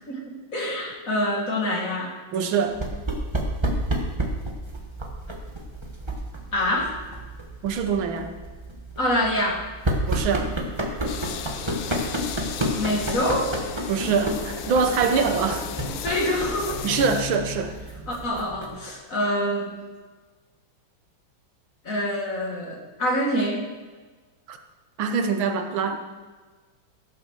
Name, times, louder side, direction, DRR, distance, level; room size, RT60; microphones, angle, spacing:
voice 1, 0.1-2.1 6.5-6.9 9.0-9.6 12.8-13.6 16.0-16.8 18.1-19.8 21.8-23.7, left 1 dB, 40° left, -1 dB, 2.2 m, -26 dB
voice 2, 2.3-2.8 7.6-8.3 10.1-10.5 13.9-15.6 16.8-17.8 24.5-24.6 25.0-26.0, right 5 dB, 75° right, 6 dB, 1.7 m, -24 dB
sound 1, 2.7-18.9, right 1 dB, 15° right, 1.0 m, -31 dB
sound 2, 11.1-17.2, left 8 dB, 75° left, 1.5 m, -35 dB
15.0 x 6.4 x 6.5 m, 1.3 s
omnidirectional pair, 2.2 m